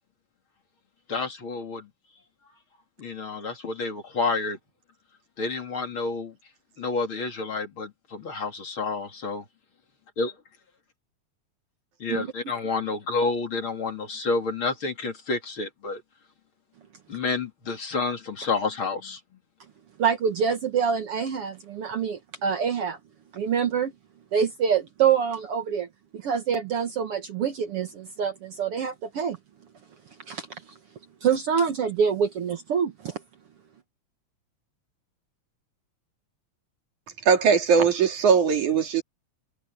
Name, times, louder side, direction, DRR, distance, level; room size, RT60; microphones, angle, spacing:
voice 1, 1.1-1.9 3.0-4.6 5.4-6.4 6.8-9.4 10.2-10.3 12.0-16.0 17.1-19.2, left 3 dB, 45° left, 3.3 m, -29 dB
voice 2, 20.0-23.0 23.3-23.9 24.3-25.9 26.2-29.4 30.3-30.5 31.2-33.2, right 7 dB, 55° right, 2.0 m, -26 dB
voice 3, 37.3-39.0, right 6 dB, 80° right, 4.2 m, -20 dB
omnidirectional pair, 3.4 m